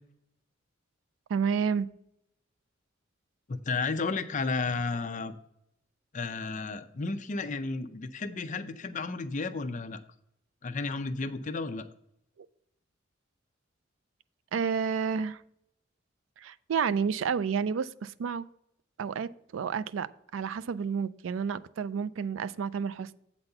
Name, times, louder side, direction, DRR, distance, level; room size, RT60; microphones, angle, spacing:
voice 1, 1.3-1.9 14.5-15.4 16.4-18.5 19.0-23.1, right 6 dB, 75° right, 17 dB, 0.4 m, -30 dB
voice 2, 3.5-5.3 6.1-10.0 10.6-11.9, left 3 dB, 40° left, 9 dB, 0.5 m, -33 dB
8.0 x 4.1 x 6.6 m, 0.77 s
head